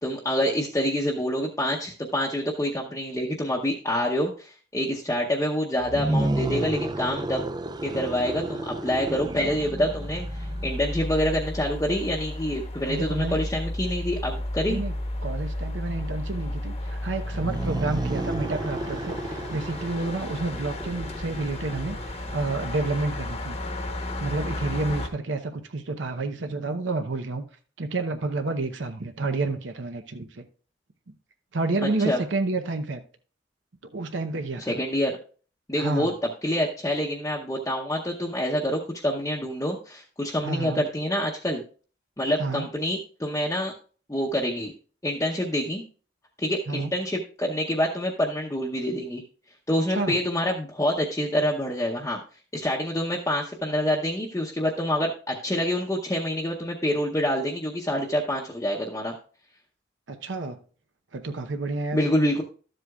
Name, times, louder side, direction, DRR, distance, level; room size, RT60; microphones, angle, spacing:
voice 1, 0.0-7.4 7.8-14.8 32.0-32.2 34.6-35.2 35.7-36.1 36.4-41.6 42.2-43.7 44.1-44.7 45.0-45.8 46.4-49.2 49.7-52.2 52.5-59.2 61.9-62.4, equal, 15° left, 0.7 m, -27 dB
sound 1, 5.8-11.0 17.2-22.9, right 2 dB, 20° right, 0.3 m, -32 dB
sound 2, 9.1-25.1, left 1 dB, 35° left, 1.0 m, -33 dB
voice 2, 12.9-13.4 14.7-15.0 15.2-23.6 24.2-27.4 27.8-30.5 31.5-33.0 33.9-34.8 35.8-36.1 40.4-40.8 42.4-42.7 46.7-46.9 49.9-50.2 60.1-60.6 61.1-62.1, right 3 dB, 85° right, 0.8 m, -29 dB
12.5 x 7.7 x 2.3 m
head